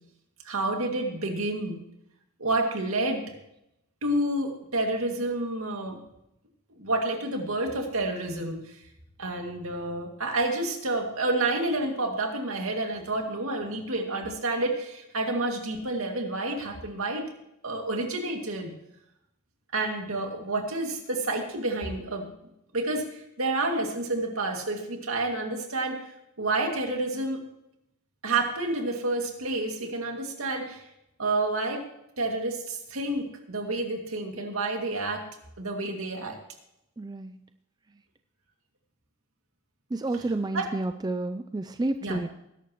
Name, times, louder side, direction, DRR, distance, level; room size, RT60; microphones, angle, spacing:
voice 1, 0.4-1.8 2.4-3.2 4.0-6.0 6.8-8.8 9.2-17.2 17.6-18.7 19.7-22.3 22.7-26.1 26.4-27.4 28.2-30.8 31.2-31.8 32.2-35.3 35.6-36.4 40.5-40.6 42.0-42.2, right 2 dB, 70° right, 2 dB, 2.3 m, -29 dB
voice 2, 37.0-37.3 39.9-42.5, right 2 dB, 20° right, 8 dB, 0.4 m, -30 dB
20.0 x 11.0 x 3.1 m, 0.82 s
head